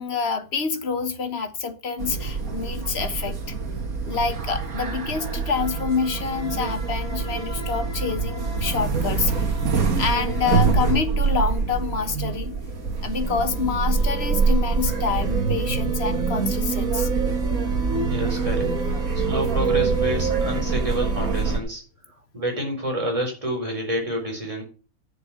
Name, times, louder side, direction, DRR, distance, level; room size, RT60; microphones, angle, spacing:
voice 1, 0.0-3.4 4.0-9.5 10.0-12.6 13.0-17.1, left 5 dB, 45° left, 1.4 m, -27 dB
sound 1, 2.0-21.6, right 5 dB, 70° right, 2.2 m, -25 dB
voice 2, 18.0-18.7 19.1-21.8 22.3-24.6, equal, 20° right, 4.5 m, -28 dB
10.5 x 6.8 x 6.7 m
omnidirectional pair, 1.6 m